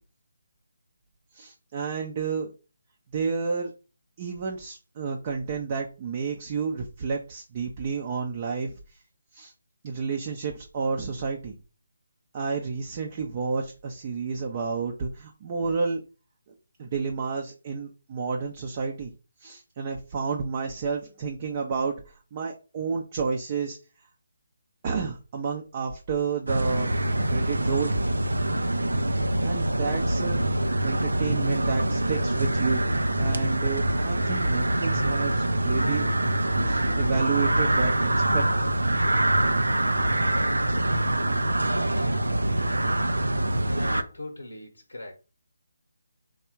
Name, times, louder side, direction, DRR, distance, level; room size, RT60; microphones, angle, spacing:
voice 1, 1.3-2.5 3.1-3.7 4.2-9.0 9.3-9.5 9.8-11.5 12.3-16.0 16.8-19.1 19.4-23.8 24.8-26.9 27.3-28.0 29.4-30.4 30.8-32.9 33.2-36.1 36.6-39.1, right 5 dB, 35° right, 0.6 m, -30 dB
sound 1, 26.5-44.0, right 1 dB, 85° right, 0.5 m, -25 dB
voice 2, 43.7-45.1, left 1 dB, 85° left, 0.9 m, -39 dB
3.5 x 2.4 x 4.5 m
figure-of-eight pair, 155°, 0 cm